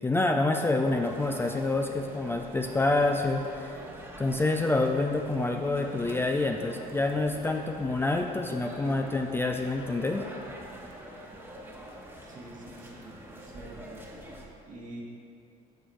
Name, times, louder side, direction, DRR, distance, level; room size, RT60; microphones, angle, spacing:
voice 1, 0.0-3.8 4.2-10.3, left 2 dB, 15° left, 3 dB, 0.4 m, -27 dB
sound 1, 0.8-14.5, right 1 dB, 10° right, 1.2 m, -45 dB
voice 2, 12.2-14.0 14.7-15.0, right 1 dB, 50° right, -2 dB, 1.8 m, -46 dB
11.0 x 6.3 x 3.2 m, 2.5 s
cardioid pair, 115°, 17 cm